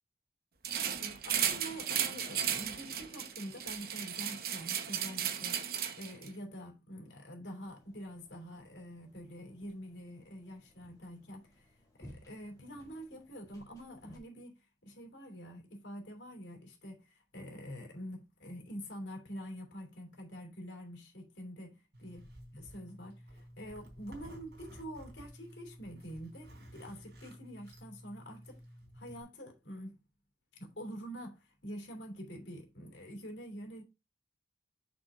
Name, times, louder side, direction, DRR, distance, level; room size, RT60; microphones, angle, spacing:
sound 1, 0.6-6.3, right 9 dB, 50° right, 0.9 m, -35 dB
voice 1, 1.0-5.7 6.0-11.7 12.0-22.2 22.5-28.6 28.9-30.0 30.5-33.8, equal, 75° left, 3.1 m, -46 dB
sound 2, 7.6-14.2, equal, 20° left, 2.2 m, -59 dB
Zipper (clothing), 21.9-29.2, equal, 65° right, 3.7 m, -53 dB
6.9 x 6.2 x 3.7 m
head